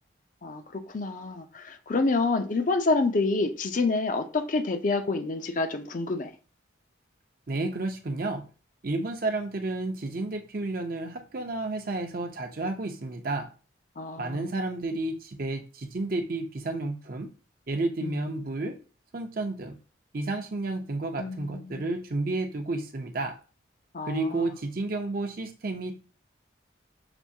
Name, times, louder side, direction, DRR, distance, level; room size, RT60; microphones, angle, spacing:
voice 1, 0.4-6.3 14.0-14.5 18.0-18.1 21.2-21.8 23.9-24.5, left 3 dB, 40° left, 0.5 m, -28 dB
voice 2, 7.5-8.4 8.8-13.5 14.2-17.3 17.7-18.8 19.1-19.8 20.1-23.3 24.1-25.9, right 2 dB, 50° right, 0.6 m, -31 dB
6.0 x 2.7 x 2.7 m
head